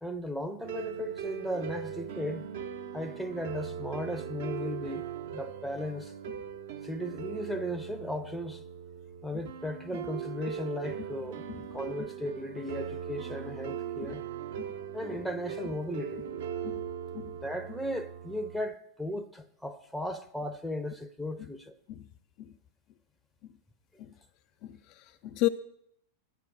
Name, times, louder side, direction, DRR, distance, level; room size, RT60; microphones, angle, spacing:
voice 1, 0.0-2.5 2.9-6.1 6.8-8.6 9.2-11.4 11.7-14.2 14.9-16.3 17.4-21.7, left 1 dB, ahead, 0.6 m, -36 dB
sound 1, 0.6-18.6, right 8 dB, 55° right, 0.8 m, -39 dB
voice 2, 24.6-25.5, left 17 dB, 45° left, 0.4 m, -33 dB
10.5 x 5.9 x 7.8 m
figure-of-eight pair, 90°, 0 cm